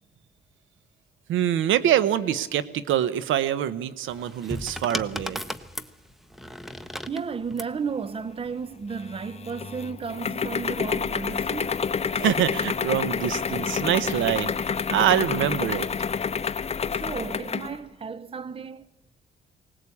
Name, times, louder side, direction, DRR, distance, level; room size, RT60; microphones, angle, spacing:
voice 1, 1.3-5.4 12.1-15.9, right 10 dB, 80° right, 0.9 m, -25 dB
sound 1, 4.1-7.8 8.8-9.2, equal, ahead, 0.9 m, -36 dB
voice 2, 7.1-11.9 16.8-18.9, right 5 dB, 30° right, 0.7 m, -33 dB
sound 2, 9.0-17.8, left 6 dB, 30° left, 0.8 m, -28 dB
20.0 x 18.5 x 8.4 m
cardioid pair, 90°, 20 cm